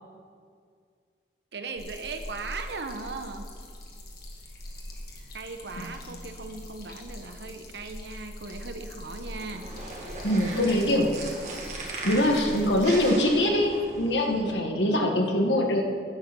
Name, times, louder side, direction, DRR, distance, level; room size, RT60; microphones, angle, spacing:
voice 1, 1.5-3.5 5.3-9.7, right 3 dB, 70° right, 6 dB, 1.0 m, -38 dB
sound 1, 1.8-13.1, left 1 dB, 60° left, 1.8 m, -43 dB
sound 2, 9.4-14.4, right 2 dB, 40° right, 1.9 m, -38 dB
voice 2, 10.2-11.1 12.0-15.8, left 1 dB, 90° left, 2 dB, 1.6 m, -23 dB
11.0 x 7.8 x 6.2 m, 2.1 s
head